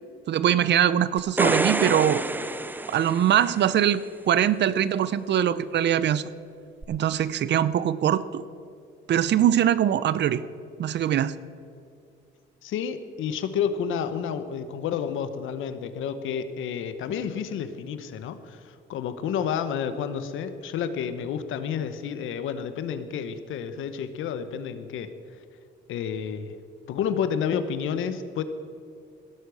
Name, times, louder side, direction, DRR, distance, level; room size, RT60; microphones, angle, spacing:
voice 1, 0.3-2.2 2.9-6.3 6.9-8.4 9.1-10.4 10.8-11.4, right 10 dB, 60° right, 16 dB, 0.6 m, -22 dB
sound 1, 1.2-3.7 6.8-6.9, right 2 dB, 10° right, 0.5 m, -27 dB
voice 2, 12.6-25.1 25.9-26.6 26.9-28.4, left 7 dB, 85° left, 11 dB, 1.0 m, -30 dB
16.5 x 8.3 x 6.3 m, 2.4 s
cardioid pair, 90°, 20 cm